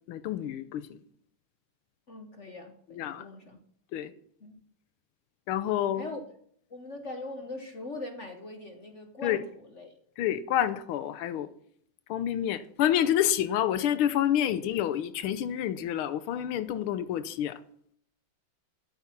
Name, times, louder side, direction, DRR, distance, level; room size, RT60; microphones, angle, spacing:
voice 1, 0.1-1.0 3.0-3.2 3.9-4.1 5.5-6.1 9.2-9.4 10.2-11.5 12.1-17.6, left 11 dB, 85° left, 1.7 m, -28 dB
voice 2, 2.1-3.6 4.4-4.6 6.0-6.3 6.7-9.9, left 2 dB, 45° left, 1.2 m, -41 dB
13.5 x 8.5 x 5.8 m
omnidirectional pair, 2.3 m